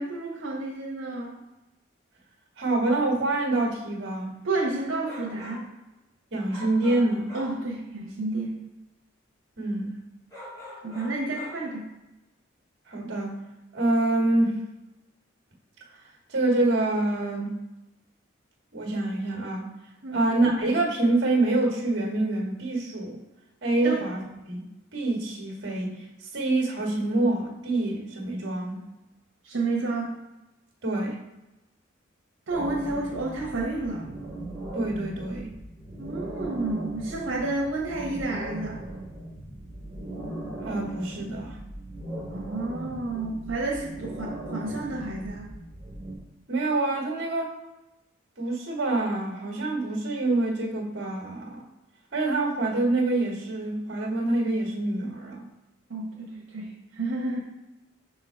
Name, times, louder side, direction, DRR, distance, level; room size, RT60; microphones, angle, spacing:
voice 1, 0.0-1.4 4.4-5.7 7.3-8.6 10.8-11.8 20.0-20.3 23.8-24.0 29.4-30.1 32.5-34.0 36.0-38.8 42.3-45.5 55.9-57.4, right 2 dB, 80° right, -3 dB, 1.1 m, -30 dB
voice 2, 2.6-4.3 6.3-7.3 9.6-10.0 12.9-13.4 13.7-14.6 16.3-17.5 18.7-19.6 20.1-23.2 23.6-24.6 24.9-28.8 30.8-31.2 34.7-35.5 40.6-41.6 46.5-47.5 48.4-51.6 52.1-55.4, right 2 dB, 55° right, 0 dB, 1.5 m, -26 dB
sound 1, 5.0-5.7 6.5-7.7 10.3-11.7, left 1 dB, 15° left, 1.9 m, -43 dB
sound 2, 32.5-46.2, right 1 dB, ahead, 2.0 m, -38 dB
5.9 x 3.8 x 4.6 m, 0.99 s
head